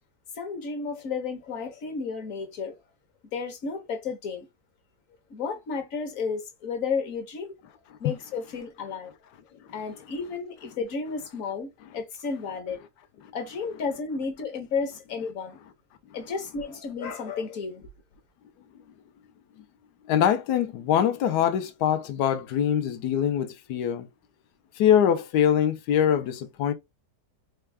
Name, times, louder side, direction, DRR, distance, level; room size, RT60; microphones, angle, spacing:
voice 1, 0.4-2.7 3.3-4.5 5.3-7.6 8.0-9.1 9.7-12.8 13.3-15.6 16.1-17.8, left 5 dB, 60° left, 1.2 m, -32 dB
voice 2, 20.1-24.1 24.8-26.7, left 9 dB, 80° left, 1.2 m, -23 dB
4.5 x 2.2 x 3.2 m
omnidirectional pair, 1.7 m